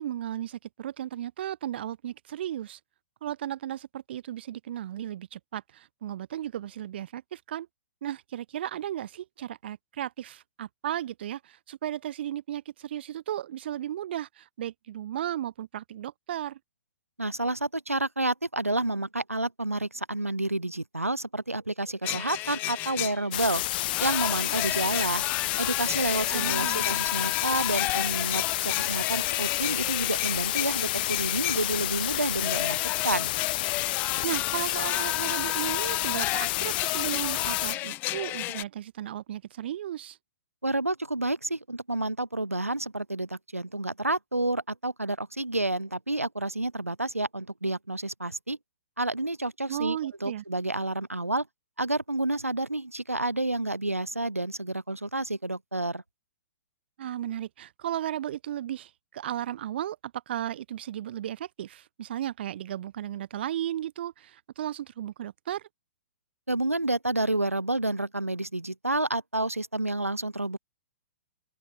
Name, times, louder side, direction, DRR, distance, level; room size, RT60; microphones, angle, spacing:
voice 1, 0.0-2.8 3.2-7.7 8.0-16.6 26.3-27.0 34.2-40.2 49.7-50.4 57.0-65.6, right 11 dB, 50° right, 2.3 m, -35 dB
voice 2, 17.2-23.6 24.0-25.2 25.6-32.8 33.0-33.3 40.6-48.6 49.0-51.5 51.8-56.0 66.5-70.6, right 2 dB, 85° right, 3.3 m, -29 dB
sound 1, 22.0-23.4 23.9-31.6 32.4-38.6, left 18 dB, 25° left, 1.0 m, -33 dB
sound 2, 23.3-37.7, left 17 dB, 40° left, 3.3 m, -29 dB
open air
figure-of-eight pair, 115°, 7 cm